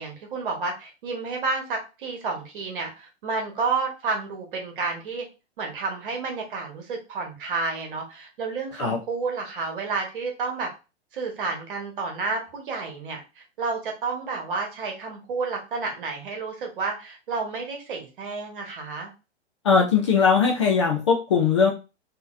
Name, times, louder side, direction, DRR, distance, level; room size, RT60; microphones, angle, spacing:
voice 1, 0.0-5.3 5.6-10.7 11.1-19.1, right 4 dB, 50° right, 2 dB, 1.2 m, -30 dB
voice 2, 19.6-21.7, left 6 dB, 25° left, 1 dB, 0.4 m, -20 dB
3.6 x 2.8 x 2.4 m, 0.30 s
figure-of-eight pair, 110°, 35 cm